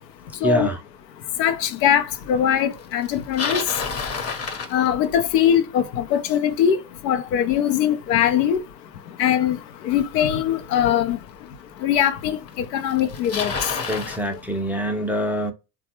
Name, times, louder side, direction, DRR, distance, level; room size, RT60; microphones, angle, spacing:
voice 1, 0.4-0.8 13.9-15.5, right 1 dB, 5° right, 0.4 m, -25 dB
voice 2, 1.4-3.6 4.7-6.8 7.0-8.6 9.2-9.6 9.8-11.2 11.8-13.7, left 9 dB, 85° left, 0.6 m, -21 dB
Bicycle, 3.0-5.4 10.4-10.5 11.3-11.4 12.5-12.6 12.8-14.2, left 5 dB, 30° left, 0.7 m, -29 dB
3.4 x 2.2 x 2.8 m
hypercardioid pair, 75°, 49 cm